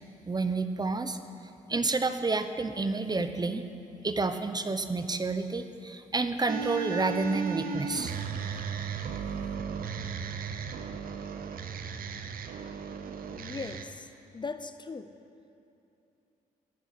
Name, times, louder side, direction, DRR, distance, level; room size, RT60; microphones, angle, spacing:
voice 1, 0.3-1.2 1.7-3.6 4.0-8.1, right 3 dB, 25° right, 10 dB, 0.8 m, -29 dB
sound 1, 6.5-13.8, right 6 dB, 75° right, 0.8 m, -36 dB
voice 2, 13.3-14.1 14.3-15.1, left 4 dB, 30° left, 10 dB, 0.7 m, -39 dB
17.0 x 6.3 x 8.5 m, 2.8 s
cardioid pair, 65°, 15 cm